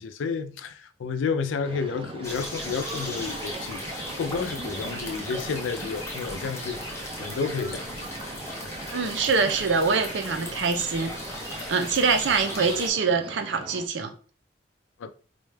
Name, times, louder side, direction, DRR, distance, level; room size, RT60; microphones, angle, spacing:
voice 1, 0.0-7.9 15.0-15.1, left 5 dB, 85° left, 0.4 m, -31 dB
sound 1, 1.6-13.9, right 3 dB, 30° right, 0.3 m, -40 dB
sound 2, 2.2-12.9, left 1 dB, 15° left, 0.8 m, -37 dB
voice 2, 8.9-11.1 11.7-14.1, right 4 dB, 70° right, 0.6 m, -24 dB
4.1 x 2.3 x 3.2 m
head